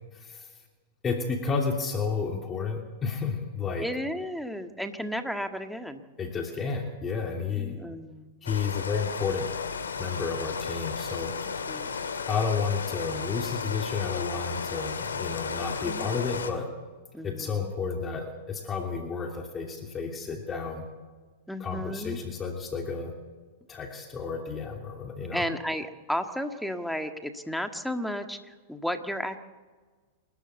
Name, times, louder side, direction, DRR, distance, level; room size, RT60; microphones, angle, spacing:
voice 1, 0.1-0.5 1.0-3.9 6.2-7.8 8.4-9.5 10.0-11.3 12.3-16.7 17.2-20.9 21.6-23.1 23.7-25.4, left 5 dB, 25° left, 2 dB, 2.8 m, -31 dB
voice 2, 3.8-6.0 7.6-8.3 11.7-12.0 15.8-16.1 17.1-17.7 21.5-22.2 25.3-29.4, equal, ahead, 7 dB, 1.7 m, -33 dB
Rain, 8.5-16.5, left 5 dB, 90° left, 2.4 m, -34 dB
27.5 x 12.5 x 8.2 m, 1.4 s
hypercardioid pair, 115°, 0 cm